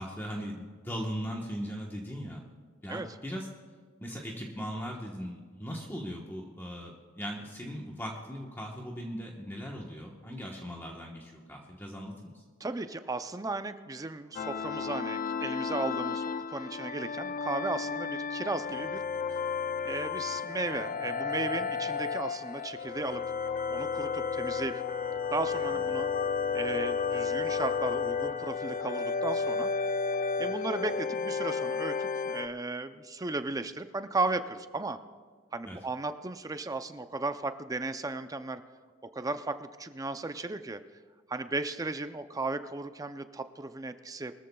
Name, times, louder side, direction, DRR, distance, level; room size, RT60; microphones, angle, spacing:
voice 1, 0.0-2.4 2.8-3.5 4.0-12.4 35.7-35.8, equal, 10° left, -1 dB, 1.1 m, -39 dB
voice 2, 12.6-16.2 16.5-19.0 19.3-19.4 19.8-23.2 23.7-24.8 25.3-26.1 26.5-29.7 30.4-35.0 35.5-38.6 39.1-40.8 41.3-44.3, right 3 dB, 20° right, 10 dB, 0.5 m, -35 dB
sound 1, 14.4-32.5, left 5 dB, 40° left, 0.4 m, -32 dB
22.5 x 14.0 x 2.3 m, 1.5 s
head